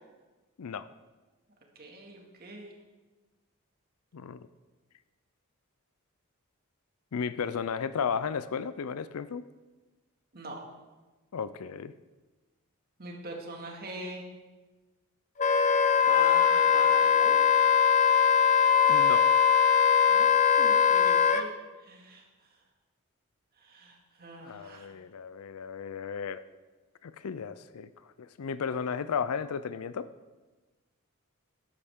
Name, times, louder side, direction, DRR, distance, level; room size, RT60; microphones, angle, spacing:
voice 1, 1.8-2.7 10.3-10.7 13.0-14.3 16.0-17.4 20.1-21.5 21.8-22.6 23.6-24.9, right 2 dB, 45° right, 0 dB, 2.2 m, -42 dB
voice 2, 4.1-4.5 7.1-9.4 11.3-11.9 18.9-19.3 24.4-26.4 27.0-27.9 28.2-30.1, left 6 dB, 90° left, 14 dB, 0.5 m, -34 dB
Wind instrument woodwind instrument, 15.4-21.4, left 7 dB, 35° left, 0.6 m, -21 dB
13.0 x 11.0 x 3.7 m, 1.2 s
head